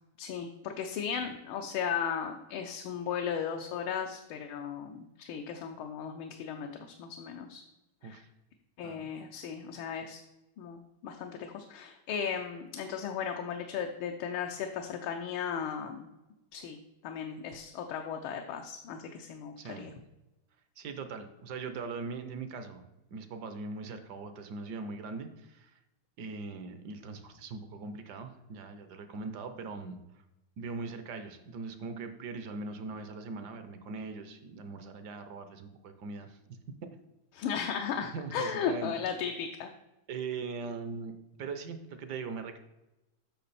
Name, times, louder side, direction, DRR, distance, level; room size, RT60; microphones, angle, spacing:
voice 1, 0.2-7.6 8.0-8.2 8.8-10.2 10.6-16.1 16.5-16.8 17.0-19.9 37.3-39.7, left 7 dB, 80° left, 4 dB, 1.5 m, -36 dB
voice 2, 19.6-19.9 20.8-25.8 26.2-30.0 30.6-36.4 38.1-38.9 40.1-41.1 41.4-42.6, right 4 dB, 65° right, 8 dB, 1.1 m, -40 dB
8.6 x 6.0 x 4.1 m, 0.99 s
omnidirectional pair, 2.3 m